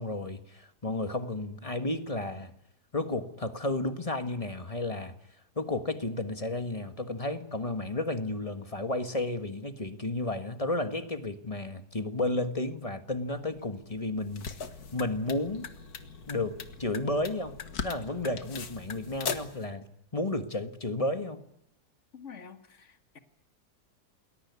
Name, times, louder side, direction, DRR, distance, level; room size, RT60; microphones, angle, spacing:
voice 1, 0.0-2.5 2.9-5.1 5.6-14.5 14.9-15.7 16.3-17.5 17.8-19.8 20.1-21.4, left 2 dB, 20° left, 8 dB, 1.5 m, -32 dB
sound 1, 13.3-19.5, left 6 dB, 85° left, 2.0 m, -46 dB
sound 2, 14.2-19.6, left 6 dB, 65° left, 2.1 m, -41 dB
voice 2, 22.1-23.2, left 6 dB, 45° left, 8 dB, 2.1 m, -48 dB
28.5 x 21.0 x 9.6 m, 0.80 s
omnidirectional pair, 1.8 m